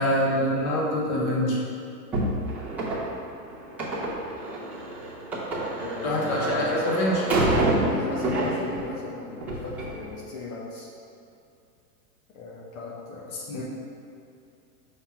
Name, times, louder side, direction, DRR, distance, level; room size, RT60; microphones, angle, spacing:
voice 1, 0.0-1.6 6.0-7.2 13.5-13.6, equal, 30° left, -4 dB, 1.0 m, -25 dB
sound 1, 2.1-9.0 9.3-9.9, right 2 dB, 5° right, 0.6 m, -28 dB
voice 2, 5.8-6.9 7.8-10.9 12.3-13.6, left 2 dB, 55° left, -3 dB, 0.9 m, -37 dB
5.9 x 3.4 x 5.6 m, 2.5 s
supercardioid pair, 155°, 50 cm